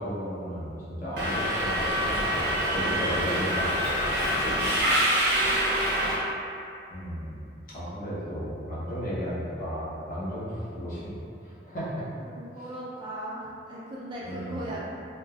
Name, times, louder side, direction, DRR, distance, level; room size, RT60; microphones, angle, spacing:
voice 1, 0.0-4.4 6.9-7.4 7.7-12.1 14.2-14.7, equal, 45° left, -9 dB, 0.7 m, -34 dB
Subway metro underground, 1.2-6.1, equal, 65° right, 0.6 m, -25 dB
voice 2, 4.8-5.6 5.9-6.2 12.2-14.9, right 1 dB, 25° right, -6 dB, 0.3 m, -39 dB
3.2 x 2.1 x 2.3 m, 2.5 s
head